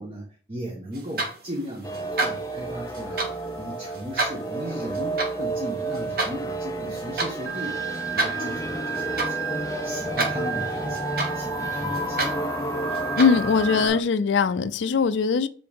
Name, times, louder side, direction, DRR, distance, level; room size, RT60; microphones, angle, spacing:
voice 1, 0.0-3.3 3.6-7.8 8.1-12.5, equal, 30° right, 1.1 m, -37 dB
sound 1, 0.9-13.7, right 2 dB, 50° right, 1.2 m, -32 dB
sound 2, 1.8-14.0, right 1 dB, 15° left, 0.4 m, -31 dB
Organ, 7.5-13.9, right 9 dB, 75° right, 1.2 m, -34 dB
voice 2, 13.2-15.5, left 5 dB, 80° left, 0.4 m, -21 dB
7.6 x 3.5 x 3.6 m
head